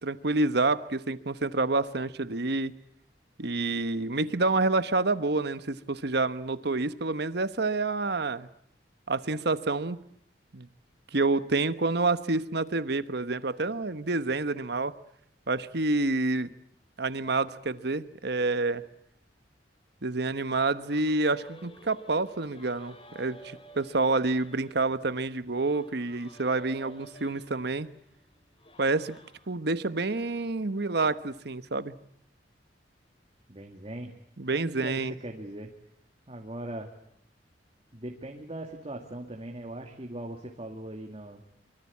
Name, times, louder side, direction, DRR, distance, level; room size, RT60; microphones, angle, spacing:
voice 1, 0.0-2.7 3.4-8.5 9.1-10.0 10.5-10.7 11.1-14.9 15.5-16.5 17.0-18.8 20.0-27.9 28.8-29.2 29.5-31.9 34.4-35.1, right 3 dB, 65° right, 13 dB, 1.2 m, -28 dB
sound 1, 20.9-29.5, right 1 dB, 30° left, 3.0 m, -53 dB
voice 2, 33.5-34.1 34.5-35.7 36.3-36.9 37.9-41.4, right 1 dB, 35° right, 1 dB, 2.4 m, -40 dB
25.0 x 24.5 x 8.6 m, 0.70 s
head